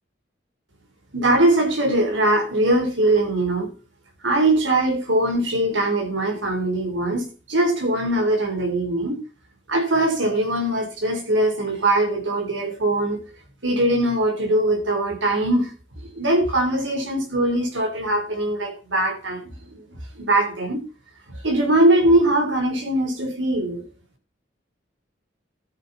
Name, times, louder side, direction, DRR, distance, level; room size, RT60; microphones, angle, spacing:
voice 1, 1.1-3.7 4.2-9.2 9.7-13.2 13.6-15.7 16.1-19.8 20.1-20.8 21.4-23.8, right 1 dB, 80° right, 4 dB, 3.9 m, -21 dB
12.5 x 10.0 x 4.2 m, 0.35 s
head